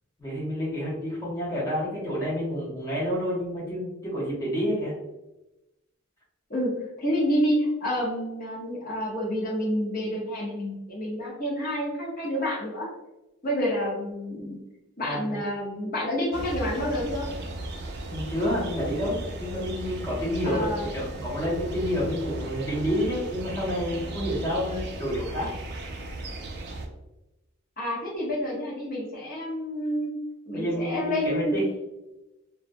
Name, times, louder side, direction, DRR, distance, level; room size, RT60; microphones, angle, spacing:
voice 1, 0.2-4.9 15.0-15.4 18.1-25.5 30.5-31.6, equal, 15° left, -9 dB, 0.7 m, -29 dB
voice 2, 6.5-12.9 13.4-14.6 15.0-17.3 20.4-20.9 27.8-30.2 30.5-31.6, equal, 45° left, -4 dB, 0.8 m, -28 dB
sound 1, 16.3-26.9, right 2 dB, 50° right, 0.3 m, -36 dB
2.3 x 2.1 x 2.6 m, 0.99 s
head